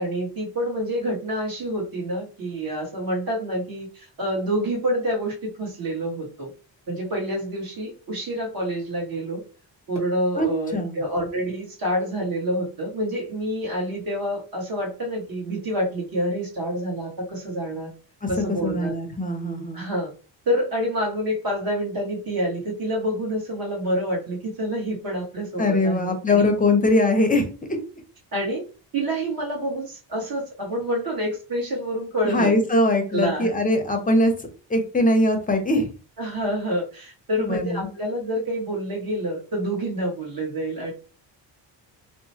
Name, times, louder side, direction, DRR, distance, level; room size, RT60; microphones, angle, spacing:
voice 1, 0.0-6.5 6.9-9.4 9.9-17.9 18.3-18.9 19.7-20.1 20.4-26.5 28.3-28.6 28.9-32.6 33.1-33.5 36.2-40.9, equal, 50° right, -2 dB, 1.4 m, -27 dB
voice 2, 10.4-11.0 18.2-19.8 25.6-27.8 32.2-34.3 34.7-35.9 37.4-37.9, left 1 dB, 20° left, 4 dB, 0.6 m, -22 dB
2.9 x 2.1 x 2.8 m, 0.35 s
cardioid pair, 120°, 44 cm